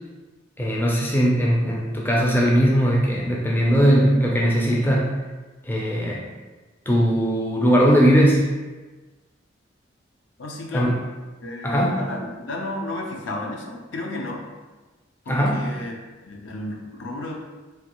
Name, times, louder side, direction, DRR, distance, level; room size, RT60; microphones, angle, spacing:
voice 1, 0.6-5.1 5.7-6.2 6.9-8.5 10.7-10.9 11.6-12.0 15.3-15.6, equal, 10° left, -3 dB, 0.4 m, -19 dB
voice 2, 10.4-11.0 11.4-14.5 15.2-16.0 16.2-17.4, left 2 dB, 80° left, 0 dB, 0.6 m, -32 dB
3.4 x 2.3 x 2.9 m, 1.2 s
head